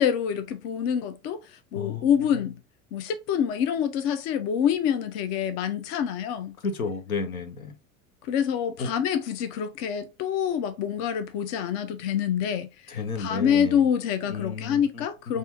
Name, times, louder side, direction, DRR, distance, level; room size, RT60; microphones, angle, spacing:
voice 1, 0.0-1.4 1.7-2.6 2.9-6.6 8.3-12.7 13.2-15.4, left 8 dB, 40° left, 0.6 m, -26 dB
voice 2, 1.7-2.4 6.6-7.7 8.8-8.9 12.9-13.9 14.3-15.1 15.3-15.4, left 4 dB, 80° left, 0.7 m, -32 dB
5.4 x 2.5 x 2.6 m
figure-of-eight pair, 75°, 42 cm